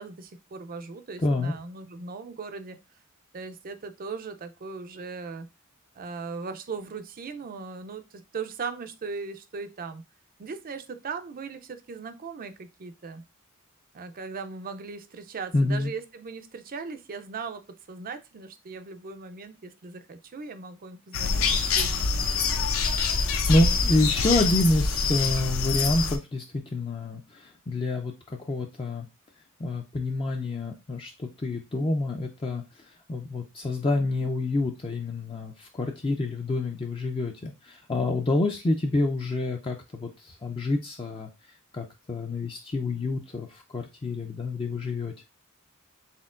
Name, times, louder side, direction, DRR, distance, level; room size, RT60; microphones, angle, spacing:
voice 1, 0.0-2.8 3.3-5.5 6.0-10.0 10.4-13.2 13.9-21.9, right 4 dB, 40° right, 9 dB, 0.5 m, -38 dB
voice 2, 1.2-1.5 15.5-15.9 22.9-29.1 29.6-41.3 41.7-45.2, left 2 dB, 25° left, 2 dB, 0.4 m, -28 dB
sound 1, 21.1-26.2, left 4 dB, 70° left, 0.6 m, -25 dB
4.3 x 3.7 x 2.4 m, 0.25 s
head